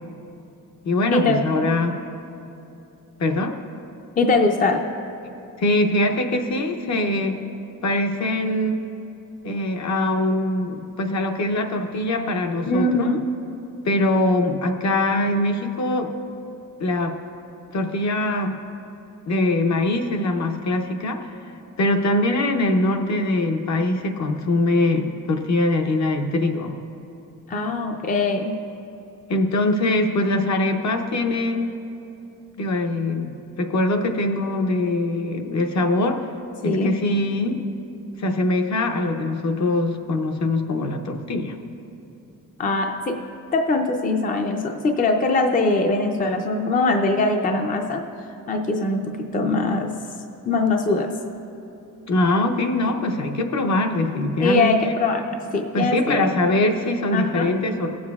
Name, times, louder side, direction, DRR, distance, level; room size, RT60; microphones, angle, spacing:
voice 1, 0.8-2.0 3.2-3.5 5.6-7.4 7.8-8.8 9.4-13.1 13.8-16.1 16.8-17.1 17.7-18.6 19.3-21.3 21.8-26.8 29.3-31.7 32.6-33.3 33.6-36.2 36.6-37.6 38.2-41.6 52.1-55.0 55.7-57.9, left 2 dB, 55° left, 4 dB, 0.8 m, -22 dB
voice 2, 4.2-4.8 12.7-13.2 27.5-28.5 36.6-37.0 42.6-43.2 43.5-48.0 48.5-49.9 50.4-51.1 54.4-55.2 55.5-56.3 57.1-57.5, left 3 dB, 25° left, 4 dB, 0.5 m, -22 dB
19.5 x 7.3 x 2.4 m, 2.9 s
wide cardioid pair, 140°, 33 cm